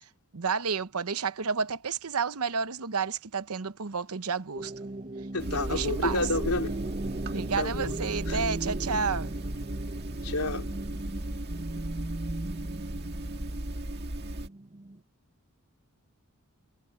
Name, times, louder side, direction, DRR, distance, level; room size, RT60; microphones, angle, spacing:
voice 1, 0.3-4.7 5.5-6.2 7.3-9.3, right 5 dB, 75° right, 0.9 m, -31 dB
sound 1, 4.5-15.0, right 2 dB, 30° right, 0.9 m, -38 dB
voice 2, 5.3-6.9 7.6-7.9 8.3-8.4 10.2-10.7, left 2 dB, 85° left, 3.2 m, -30 dB
sound 2, 5.4-14.5, right 1 dB, 50° right, 1.9 m, -35 dB
head